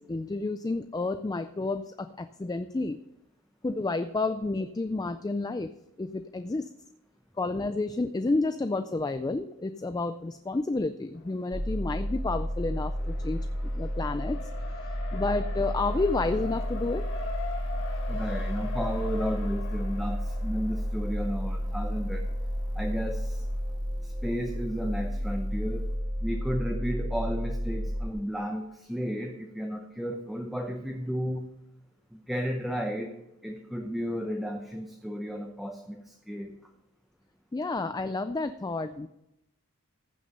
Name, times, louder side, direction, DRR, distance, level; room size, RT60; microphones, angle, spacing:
voice 1, 0.0-3.0 3.6-5.7 6.0-6.7 7.4-13.5 13.7-14.4 15.1-17.0 37.5-39.1, left 3 dB, 15° left, 10 dB, 0.3 m, -30 dB
Race car auto racing, 11.1-23.8, left 3 dB, 55° left, 1.8 m, -43 dB
sound 1, 11.5-28.1, equal, 20° right, 1.7 m, -32 dB
voice 2, 18.1-22.3 22.7-23.4 24.0-25.9 26.2-31.5 32.1-33.2 33.4-36.6, equal, ahead, 2 dB, 0.8 m, -33 dB
15.0 x 6.4 x 5.4 m, 0.85 s
head